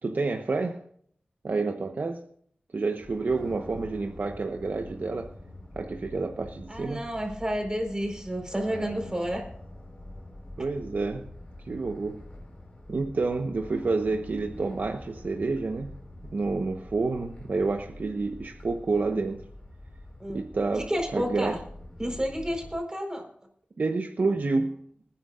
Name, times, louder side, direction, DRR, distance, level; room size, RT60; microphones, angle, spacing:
voice 1, 0.0-0.8 1.4-2.2 2.7-5.3 5.7-7.0 10.6-11.3 11.6-12.2 12.9-16.0 16.3-19.4 20.3-21.5 23.8-24.8, right 3 dB, 70° right, 1.1 m, -29 dB
sound 1, 3.0-22.8, left 1 dB, 30° left, 4.7 m, -45 dB
voice 2, 6.7-9.5 20.2-20.4 20.8-21.6 22.0-23.3, equal, 20° right, 4.5 m, -30 dB
26.0 x 10.0 x 2.5 m
wide cardioid pair, 75°, 3 cm